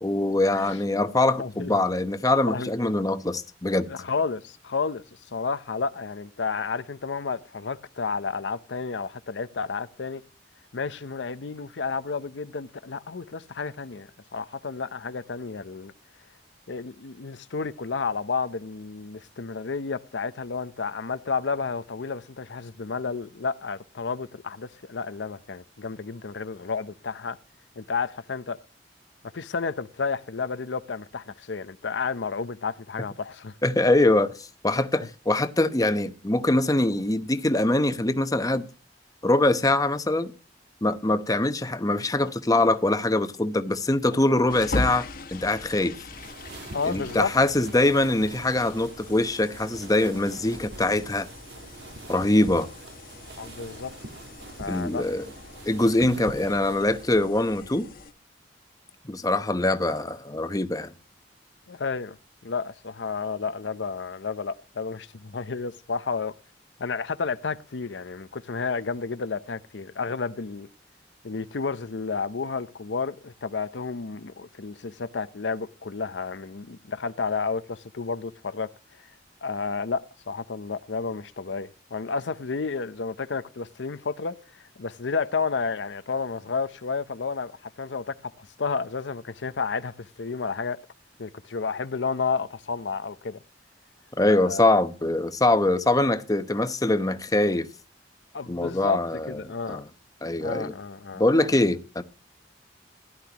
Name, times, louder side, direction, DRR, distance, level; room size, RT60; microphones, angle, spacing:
voice 1, 0.0-3.9 33.6-38.7 39.2-40.3 40.8-45.1 45.3-45.9 46.9-51.3 52.1-52.7 54.7-55.2 55.7-57.9 59.1-60.9 94.2-97.7 98.5-99.8 100.2-100.7 101.1-102.0, left 2 dB, 20° left, 0.9 m, -23 dB
voice 2, 1.4-1.8 2.5-2.9 3.9-10.2 10.7-15.9 16.7-27.4 27.8-28.6 29.3-33.6 46.7-47.3 53.4-53.9 54.6-55.0 61.7-62.2 62.4-66.3 66.8-70.7 71.2-78.7 79.4-84.4 84.8-90.8 91.2-93.4 94.3-94.6 98.3-99.0 99.3-99.8 100.4-101.2, left 4 dB, 80° left, 0.7 m, -31 dB
sound 1, 44.5-58.1, left 2 dB, 55° left, 1.5 m, -40 dB
sound 2, 46.1-57.3, right 2 dB, 65° right, 1.5 m, -44 dB
15.5 x 11.5 x 2.9 m
head